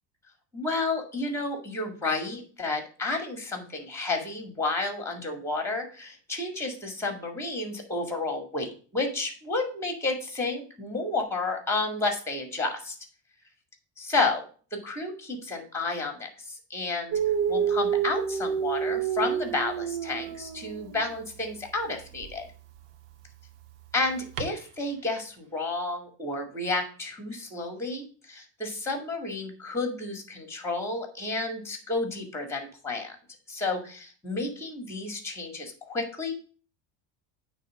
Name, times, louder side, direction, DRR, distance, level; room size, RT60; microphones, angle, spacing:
voice 1, 0.5-13.0 14.1-14.4 14.7-17.2 17.5-22.4 23.9-33.2 33.5-36.3, left 3 dB, 5° left, 4 dB, 1.9 m, -31 dB
Dog, 17.1-21.1 22.1-22.3 24.4-24.5, right 8 dB, 70° right, 0.9 m, -28 dB
8.9 x 3.4 x 6.3 m, 0.41 s
cardioid pair, 125°, 45 cm